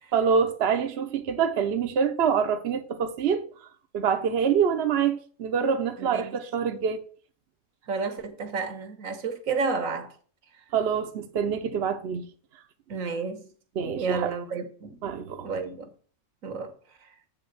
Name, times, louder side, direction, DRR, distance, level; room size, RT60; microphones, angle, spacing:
voice 1, 0.1-3.4 3.9-7.0 10.7-12.2 13.8-14.3 15.0-15.5, right 7 dB, 55° right, 0.9 m, -25 dB
voice 2, 6.0-6.4 7.9-10.1 12.9-13.5 13.8-15.0 15.4-15.9 16.4-16.8, right 4 dB, 75° right, 1.5 m, -31 dB
8.6 x 3.6 x 6.8 m
omnidirectional pair, 1.4 m